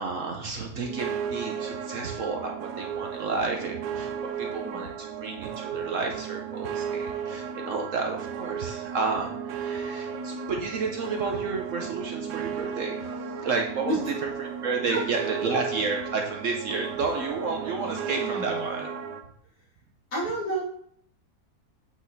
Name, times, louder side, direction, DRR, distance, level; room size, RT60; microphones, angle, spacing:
voice 1, 0.0-4.1 4.4-13.0 13.4-13.9 14.4-18.9, right 4 dB, 60° right, 2 dB, 1.0 m, -31 dB
sound 1, 0.8-19.2, right 7 dB, 85° right, 1.3 m, -34 dB
voice 2, 17.8-18.8 20.1-20.6, right 1 dB, 60° left, -6 dB, 3.6 m, -31 dB
8.3 x 4.1 x 4.0 m, 0.65 s
omnidirectional pair, 1.8 m